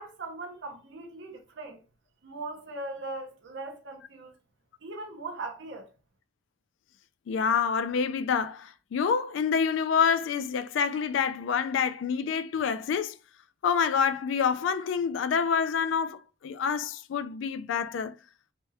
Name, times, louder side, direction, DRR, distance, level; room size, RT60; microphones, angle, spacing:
voice 1, 0.0-1.8 2.2-4.3 4.8-5.9, right 2 dB, 75° right, 0.7 m, -39 dB
voice 2, 7.3-13.2 13.6-18.1, left 6 dB, 90° left, 0.3 m, -27 dB
3.3 x 2.8 x 2.2 m
head